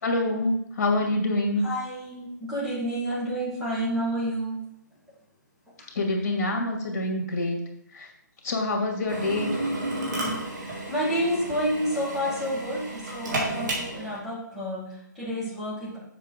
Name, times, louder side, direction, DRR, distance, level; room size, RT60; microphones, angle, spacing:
voice 1, 0.0-1.6 5.9-7.6 7.9-8.1 8.4-9.5, left 2 dB, 50° left, 1 dB, 2.3 m, -26 dB
voice 2, 1.6-4.7 5.8-5.9 10.6-16.0, equal, 5° right, -9 dB, 2.2 m, -30 dB
Drill, 9.1-14.2, right 1 dB, 65° right, 3.1 m, -32 dB
7.5 x 5.8 x 4.1 m, 0.73 s
hypercardioid pair, 145°, 10 cm